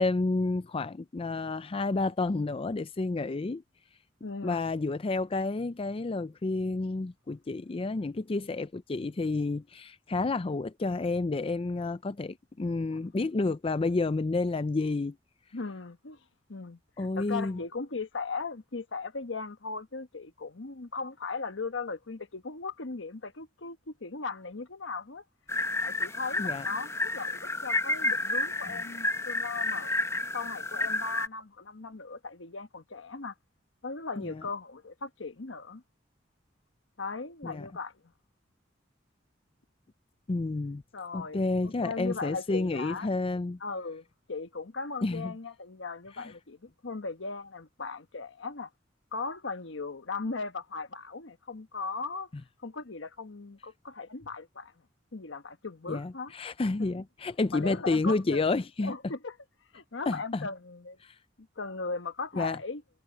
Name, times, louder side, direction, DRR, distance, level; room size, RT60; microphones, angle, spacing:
voice 1, 0.0-3.6 4.4-15.2 17.0-17.6 26.4-26.7 34.2-34.4 37.4-37.7 40.3-40.8 41.1-43.6 45.0-45.3 46.2-46.3 55.9-58.9 60.1-60.5 61.0-61.1 62.4-62.6, left 3 dB, 30° left, 0.4 m, -30 dB
voice 2, 4.2-4.7 12.9-13.0 15.5-16.2 16.5-25.2 25.8-30.0 30.3-33.3 33.8-35.8 37.0-37.9 40.9-43.1 43.6-48.7 49.1-52.3 52.6-54.7 55.1-56.3 56.9-57.0 57.5-58.5 58.8-59.4 59.7-61.0 61.4-62.8, left 4 dB, 85° left, 1.2 m, -38 dB
sound 1, 25.5-31.3, left 2 dB, 15° left, 0.8 m, -30 dB
head